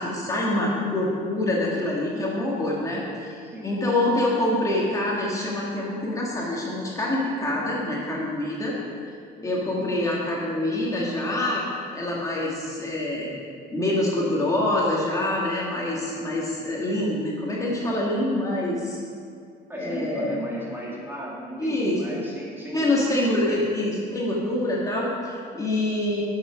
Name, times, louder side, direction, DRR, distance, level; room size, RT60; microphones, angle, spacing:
voice 1, 0.0-8.7 9.4-11.6 11.9-13.3 13.7-19.0 19.8-20.4 21.6-22.0 22.7-26.2, left 1 dB, 20° left, -5 dB, 2.0 m, -26 dB
voice 2, 9.4-9.8 19.7-23.4, right 1 dB, 15° right, -4 dB, 2.3 m, -36 dB
11.0 x 7.1 x 5.1 m, 2.2 s
cardioid pair, 110°, 17 cm